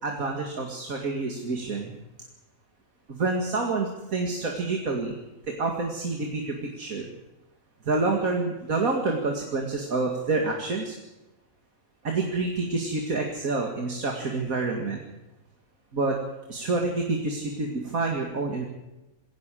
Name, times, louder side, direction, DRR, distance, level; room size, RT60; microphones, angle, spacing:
voice 1, 0.0-1.9 3.1-5.1 5.4-7.1 7.8-11.0 12.0-15.0 15.9-16.2 16.5-18.6, right 3 dB, 75° right, 1 dB, 2.6 m, -28 dB
21.0 x 17.0 x 7.6 m, 1.0 s
omnidirectional pair, 1.5 m